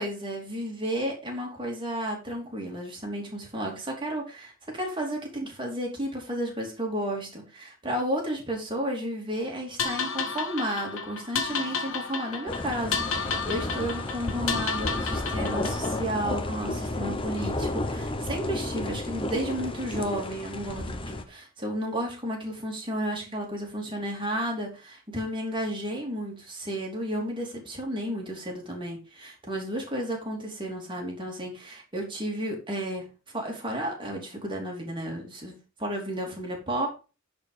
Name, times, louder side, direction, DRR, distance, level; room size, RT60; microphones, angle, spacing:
voice 1, 0.0-33.1 33.3-35.5 35.8-36.9, right 1 dB, 25° right, 0 dB, 3.1 m, -32 dB
sound 1, 9.8-16.0, left 5 dB, 65° left, 1.5 m, -32 dB
sound 2, 12.5-21.2, left 2 dB, 25° left, 0.9 m, -32 dB
10.5 x 4.7 x 5.0 m, 0.33 s
head